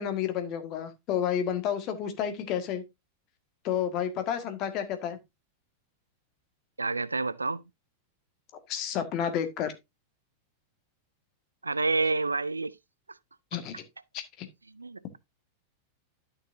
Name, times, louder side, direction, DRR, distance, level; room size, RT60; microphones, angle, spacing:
voice 1, 0.0-2.8 3.6-5.2 8.7-9.7 13.5-13.8 14.1-14.5, left 9 dB, 40° left, 1.8 m, -30 dB
voice 2, 6.8-7.6 11.6-12.8 14.7-15.2, right 3 dB, 80° right, 0.4 m, -29 dB
12.0 x 6.5 x 2.7 m
figure-of-eight pair, 90°, 0 cm